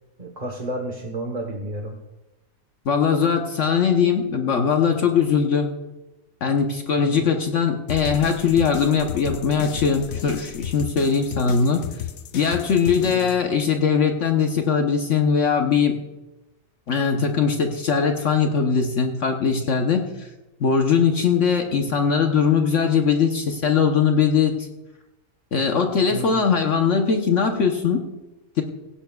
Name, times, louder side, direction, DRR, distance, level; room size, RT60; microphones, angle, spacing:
voice 1, 0.2-2.0 7.0-7.3 13.0-13.3 26.1-26.5, right 1 dB, 30° right, 2 dB, 1.1 m, -32 dB
voice 2, 2.8-5.7 6.4-11.8 12.3-16.0 16.9-20.3 20.6-24.7 25.5-28.1 28.6-28.7, left 6 dB, 60° left, 4 dB, 1.2 m, -20 dB
sound 1, 7.9-13.4, left 9 dB, 75° left, 1.1 m, -34 dB
17.0 x 15.5 x 2.3 m, 1.0 s
omnidirectional pair, 1.5 m